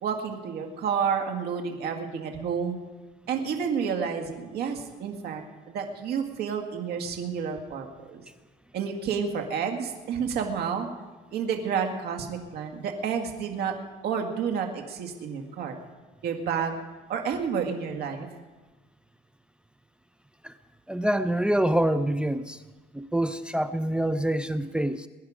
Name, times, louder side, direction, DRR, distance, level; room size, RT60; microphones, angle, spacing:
voice 1, 0.0-2.8 3.3-8.2 8.7-10.9 11.3-13.8 14.0-15.7 16.2-16.8 17.1-18.3, right 6 dB, 70° right, 4 dB, 2.0 m, -30 dB
voice 2, 20.9-22.6 22.9-25.1, right 1 dB, 5° right, 10 dB, 0.5 m, -26 dB
22.0 x 10.5 x 5.0 m, 1.2 s
cardioid pair, 110°, 17 cm